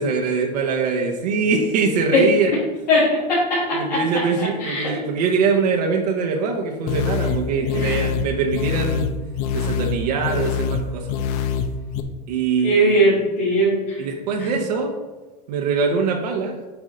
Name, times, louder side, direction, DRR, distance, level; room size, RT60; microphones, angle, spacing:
voice 1, 0.0-2.5 3.7-9.1 9.5-11.1 12.3-13.1 14.0-14.9 15.5-16.6, right 5 dB, 75° right, 2 dB, 1.0 m, -23 dB
voice 2, 2.9-4.9 7.5-8.2 12.6-14.0 14.4-14.6, equal, 85° left, -10 dB, 2.3 m, -20 dB
sound 1, 6.9-12.0, left 6 dB, 65° left, 0.7 m, -25 dB
8.0 x 5.0 x 3.9 m, 1.2 s
hypercardioid pair, 90°, 21 cm